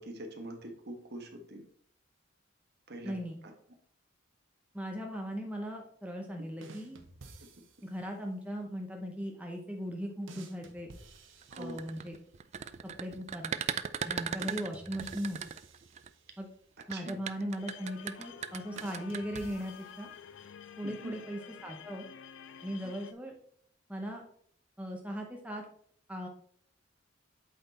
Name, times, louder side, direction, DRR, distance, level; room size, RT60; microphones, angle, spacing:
voice 1, 0.0-1.6 2.9-3.1 11.5-11.8 16.9-17.2 20.8-21.2, right 1 dB, 55° right, 4 dB, 1.3 m, -43 dB
voice 2, 3.0-3.4 4.7-7.0 7.8-10.9 11.6-12.2 13.0-13.5 14.0-15.4 16.4-16.5 16.9-20.1 20.8-22.1 22.6-23.3 23.9-24.2 24.8-25.6 26.1-26.3, equal, 5° right, 1 dB, 0.7 m, -38 dB
sound 1, 6.6-8.0 10.3-12.2 14.4-16.5 18.8-20.4, right 2 dB, 75° right, 1.0 m, -52 dB
sound 2, 11.4-16.1 16.8-19.4, right 8 dB, 35° right, 0.3 m, -37 dB
sound 3, 17.6-23.1, left 7 dB, 65° left, 0.4 m, -50 dB
8.3 x 4.0 x 4.1 m, 0.63 s
head